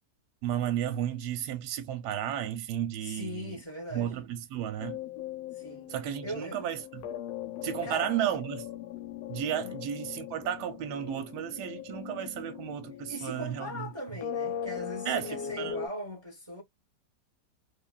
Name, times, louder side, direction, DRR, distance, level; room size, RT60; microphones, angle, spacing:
voice 1, 0.4-3.5 3.9-5.0 5.9-6.8 7.6-8.7 9.3-13.9 15.1-15.7, right 10 dB, 70° right, 1.1 m, -33 dB
voice 2, 3.0-4.1 5.5-5.9 6.2-6.7 7.8-8.1 9.6-9.8 13.1-16.6, equal, 20° right, 0.8 m, -39 dB
sound 1, 4.8-15.9, left 9 dB, 85° left, 1.3 m, -40 dB
2.9 x 2.3 x 2.2 m
omnidirectional pair, 1.9 m